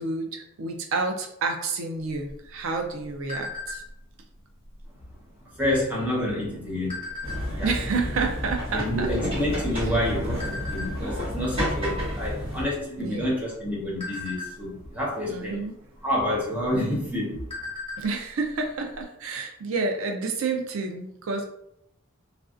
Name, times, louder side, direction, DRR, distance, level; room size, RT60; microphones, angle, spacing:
voice 1, 0.0-3.8 7.6-9.1 9.8-9.9 13.0-13.3 15.3-15.7 18.0-21.4, right 4 dB, 90° right, 4 dB, 0.5 m, -29 dB
sound 1, 2.1-4.1 4.6-4.9 5.1-5.5 6.2-7.7 8.3-8.4 8.6-9.9 10.4-10.9 11.4-11.7 12.0-12.2 12.6-13.2 13.6-15.0 16.1-16.2 16.6-16.7 17.1-18.2 18.4-18.5 18.9-19.0, left 3 dB, 30° left, 1.0 m, -37 dB
voice 2, 5.6-7.0 7.5-7.7 8.7-15.6 16.0-17.5, left 1 dB, 10° right, -6 dB, 0.9 m, -28 dB
sound 2, 7.2-12.6, equal, 25° right, 1.4 m, -30 dB
3.1 x 2.5 x 2.4 m, 0.76 s
head